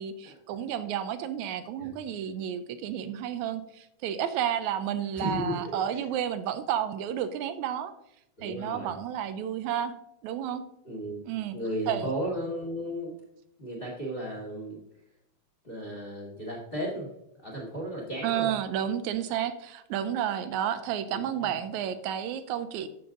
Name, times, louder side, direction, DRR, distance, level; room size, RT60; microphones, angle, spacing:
voice 1, 0.0-7.9 8.4-9.9 10.2-10.6 11.3-11.6 11.9-12.1 18.2-22.9, right 9 dB, 85° right, 11 dB, 2.0 m, -31 dB
voice 2, 5.1-6.1 8.4-8.9 10.8-11.2 11.5-13.1 13.6-14.8 15.6-17.1 17.4-18.6 21.1-21.6, equal, 20° left, -2 dB, 1.8 m, -35 dB
10.5 x 7.0 x 3.8 m, 0.79 s
omnidirectional pair, 3.3 m